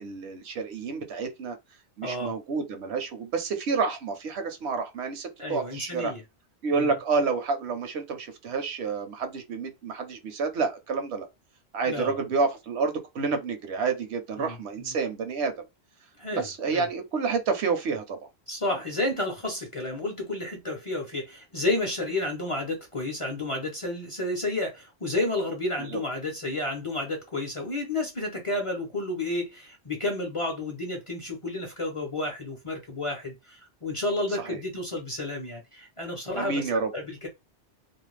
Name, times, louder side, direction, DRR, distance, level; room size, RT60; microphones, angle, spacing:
voice 1, 0.0-1.6 2.0-6.1 6.6-11.3 11.7-15.5 16.3-18.3 18.7-18.8 25.8-26.0 34.4-34.6 36.3-36.9, right 4 dB, 75° right, 0.9 m, -29 dB
voice 2, 2.0-2.3 5.4-6.2 6.7-7.0 11.9-12.2 14.4-14.9 16.2-16.5 16.7-16.9 18.5-36.6 36.9-37.3, left 2 dB, 35° left, 0.6 m, -31 dB
2.4 x 2.1 x 3.1 m
omnidirectional pair, 1.2 m